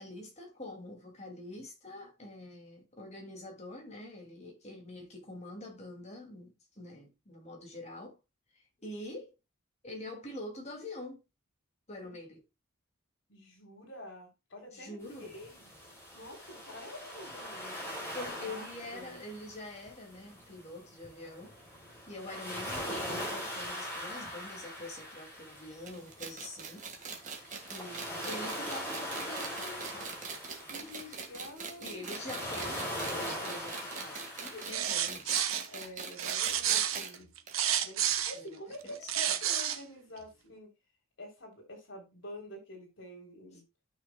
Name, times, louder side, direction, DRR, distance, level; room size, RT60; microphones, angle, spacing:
voice 1, 0.0-8.2 8.5-9.3 9.8-11.2 11.9-12.4 14.7-15.3 18.1-21.6 22.1-26.9 27.2-30.2 31.0-31.2 31.8-35.6 38.3-38.5 38.8-38.9 39.3-39.4, left 2 dB, 30° left, 2.5 m, -45 dB
voice 2, 13.3-15.7 16.1-17.8 18.2-19.2 30.6-32.4 35.7-37.3 37.8-40.7 41.2-43.6, left 1 dB, 60° left, 3.4 m, -48 dB
sound 1, 15.0-34.9, equal, 10° left, 3.8 m, -41 dB
sound 2, 25.9-37.2 37.5-37.6 37.8-37.9 38.8-38.9, right 5 dB, 35° right, 1.7 m, -43 dB
sound 3, 34.6-35.7 36.2-38.4 38.9-39.8, right 10 dB, 80° right, 1.0 m, -30 dB
13.5 x 6.3 x 2.3 m
head